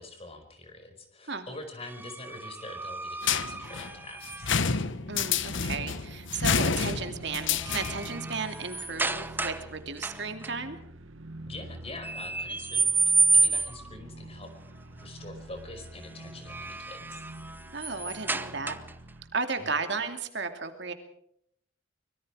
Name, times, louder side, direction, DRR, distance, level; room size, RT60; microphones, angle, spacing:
voice 1, 0.0-4.6 11.5-13.0 13.3-14.5 15.0-17.3 19.6-19.7, left 2 dB, 30° left, 6 dB, 5.2 m, -44 dB
sound 1, 1.8-4.7 6.5-6.8 7.3-9.7 10.0-10.5 12.0-13.9 16.2-19.1, right 4 dB, 10° right, 0.9 m, -30 dB
sound 2, 3.2-8.2, left 6 dB, 70° left, 1.2 m, -29 dB
sound 3, 4.6-19.4, right 1 dB, 85° right, 1.6 m, -47 dB
voice 2, 5.1-10.8 17.7-18.8 19.3-20.9, right 4 dB, 60° right, 7 dB, 2.6 m, -34 dB
25.0 x 22.5 x 4.9 m, 0.72 s
head